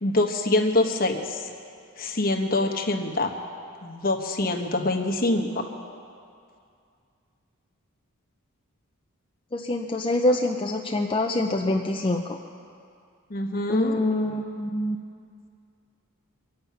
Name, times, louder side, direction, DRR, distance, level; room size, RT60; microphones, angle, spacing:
voice 1, 0.0-1.5 2.0-3.3 3.8-5.6 13.3-14.0, left 2 dB, 40° left, 3 dB, 1.1 m, -25 dB
voice 2, 9.5-12.4 13.7-15.0, left 1 dB, 25° left, 2 dB, 0.5 m, -25 dB
25.0 x 8.7 x 5.8 m, 2.4 s
head